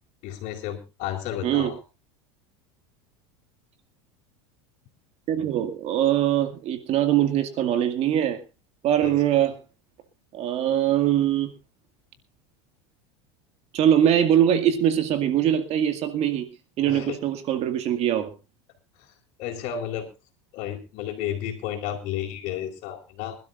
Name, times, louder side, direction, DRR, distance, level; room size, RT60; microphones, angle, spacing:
voice 1, 0.2-1.8 9.0-9.1 16.9-17.2 19.4-20.1 20.5-23.4, left 10 dB, 55° left, -3 dB, 3.7 m, -32 dB
voice 2, 5.3-8.4 8.8-9.6 10.3-11.5 13.7-16.5 16.8-18.3, right 10 dB, 50° right, 9 dB, 2.1 m, -22 dB
25.5 x 12.5 x 2.6 m, 0.29 s
supercardioid pair, 105°, 14 cm